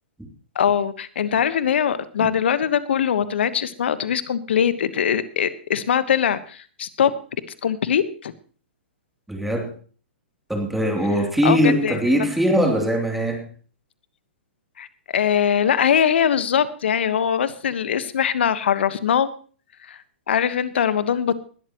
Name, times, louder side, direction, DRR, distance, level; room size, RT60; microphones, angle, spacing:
voice 1, 0.5-7.1 7.6-8.3 11.4-12.3 14.8-14.9 15.1-19.3 19.9-20.0 20.3-21.4, left 8 dB, 65° left, 15 dB, 1.2 m, -22 dB
voice 2, 9.3-9.7 10.5-13.5, equal, 5° right, 1 dB, 2.9 m, -21 dB
20.5 x 12.0 x 3.0 m, 0.41 s
figure-of-eight pair, 115°, 6 cm